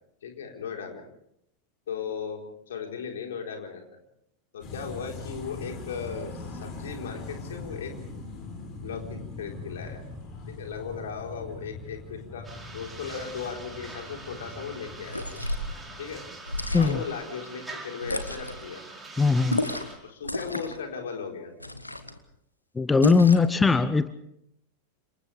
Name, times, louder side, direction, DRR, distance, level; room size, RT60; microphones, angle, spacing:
voice 1, 0.2-1.0 1.9-4.0 4.5-7.9 8.8-10.0 10.5-15.2 16.0-16.2 16.8-18.8 20.0-21.5, left 6 dB, 60° left, 2 dB, 4.3 m, -37 dB
sound 1, 4.6-16.3, left 3 dB, 35° left, 6.2 m, -41 dB
sound 2, 12.4-20.0, right 3 dB, 10° right, 5.0 m, -44 dB
sound 3, 15.0-15.7 16.5-17.1 18.0-18.6 19.5-20.0 20.2-20.8 21.6-22.2 23.0-23.5, left 1 dB, 85° left, 1.5 m, -31 dB
voice 2, 19.2-19.6 22.7-24.1, left 4 dB, 10° left, 14 dB, 0.8 m, -20 dB
29.5 x 27.5 x 3.5 m, 0.76 s
figure-of-eight pair, 90°, 0 cm